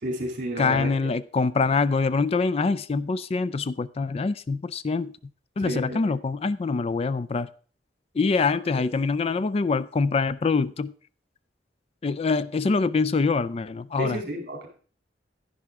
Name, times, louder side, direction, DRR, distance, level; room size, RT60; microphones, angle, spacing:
voice 1, 0.0-1.1 5.6-6.0 14.0-14.7, equal, 50° right, 2.7 m, -31 dB
voice 2, 0.6-5.1 5.6-7.5 8.1-10.9 12.0-14.2, left 4 dB, 35° left, 0.3 m, -24 dB
10.5 x 10.0 x 3.5 m
head